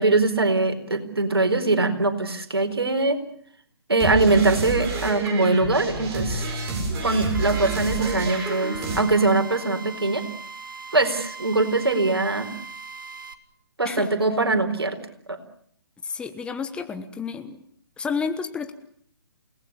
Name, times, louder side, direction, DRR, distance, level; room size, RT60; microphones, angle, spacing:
voice 1, 0.0-3.2 3.9-6.5 7.0-10.3 10.9-12.5 13.8-15.0 15.3-15.4, right 3 dB, 75° right, 7 dB, 4.3 m, -22 dB
sound 1, 4.0-9.0, right 2 dB, 20° right, 7.3 m, -29 dB
Drill, 7.3-13.3, right 4 dB, 55° right, 2.6 m, -39 dB
voice 2, 16.0-17.6 18.0-18.7, left 5 dB, 10° left, 9 dB, 1.2 m, -30 dB
29.0 x 19.0 x 8.2 m, 0.63 s
figure-of-eight pair, 135°, 13 cm